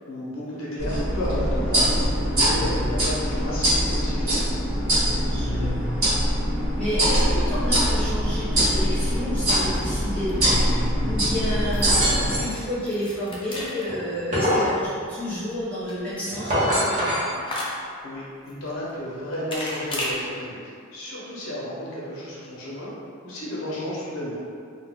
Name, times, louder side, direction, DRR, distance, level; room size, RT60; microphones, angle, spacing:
voice 1, 0.1-4.4 18.0-20.6 20.9-22.9 23.2-24.4, left 1 dB, 65° left, -6 dB, 0.6 m, -32 dB
sound 1, 0.8-12.4, equal, 85° right, 1.2 m, -23 dB
voice 2, 5.3-6.0 6.7-17.3 24.0-24.2, left 1 dB, 5° left, -12 dB, 0.8 m, -31 dB
sound 2, 8.9-20.2, left 1 dB, 25° left, 0.4 m, -38 dB
sound 3, 11.8-12.6 13.9-14.7 16.3-17.3, equal, 35° right, 0.7 m, -23 dB
2.2 x 2.2 x 3.4 m, 2.2 s
head